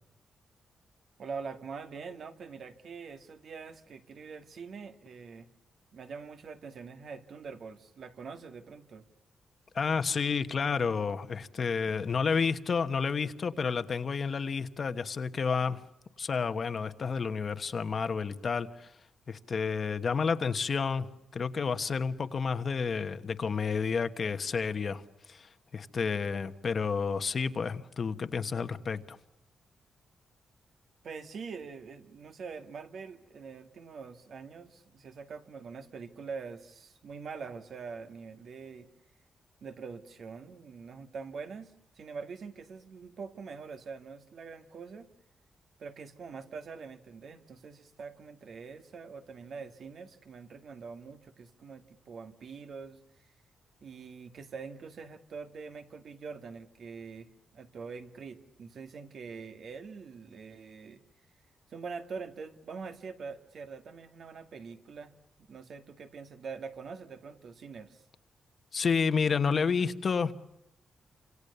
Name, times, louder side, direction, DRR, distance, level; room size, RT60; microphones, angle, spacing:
voice 1, 1.2-5.5 5.9-9.1 31.0-38.9 39.6-45.1 45.8-53.3 53.8-61.0 61.7-65.1 65.4-68.0, right 5 dB, 55° right, 8 dB, 2.0 m, -44 dB
voice 2, 9.7-15.8 16.2-18.9 19.3-29.2 68.7-70.3, left 5 dB, 40° left, 10 dB, 1.3 m, -30 dB
28.5 x 26.5 x 6.9 m, 0.79 s
wide cardioid pair, 145°, 0 cm